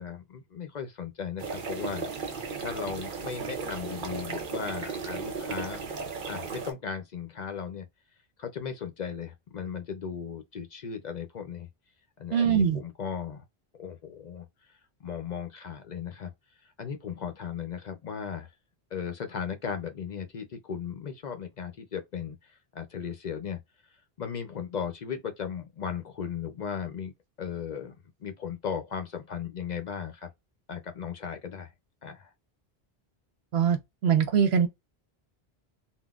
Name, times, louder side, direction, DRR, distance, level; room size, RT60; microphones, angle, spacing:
voice 1, 0.0-2.0 2.3-5.9 6.3-7.8 8.4-11.7 12.2-13.4 13.8-14.4 15.0-16.3 16.8-18.5 18.9-23.6 24.2-27.1 27.4-27.9 28.2-30.3 30.7-31.7 32.0-32.3, left 7 dB, 55° left, 0.6 m, -36 dB
sound 1, 1.4-6.7, right 5 dB, 55° right, 0.9 m, -35 dB
voice 2, 12.3-12.8 33.5-34.7, right 7 dB, 80° right, 1.0 m, -23 dB
3.8 x 2.0 x 2.3 m
omnidirectional pair, 1.0 m